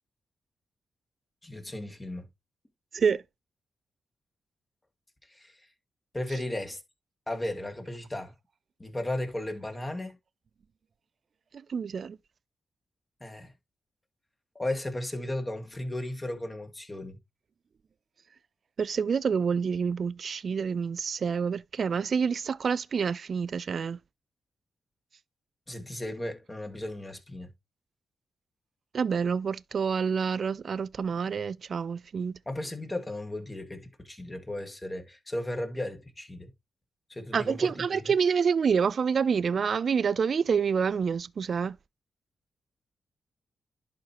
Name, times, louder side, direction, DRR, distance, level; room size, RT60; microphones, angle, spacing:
voice 1, 1.4-2.2 5.3-5.5 6.1-6.8 7.3-8.3 8.8-10.2 13.2-13.5 14.6-17.2 25.7-27.5 32.5-36.5 37.1-38.1, left 1 dB, 20° left, 2.2 m, -35 dB
voice 2, 11.7-12.2 18.8-24.0 28.9-32.3 37.3-41.7, right 6 dB, 60° right, 0.4 m, -27 dB
11.0 x 4.4 x 2.9 m
cardioid pair, 60°, 0 cm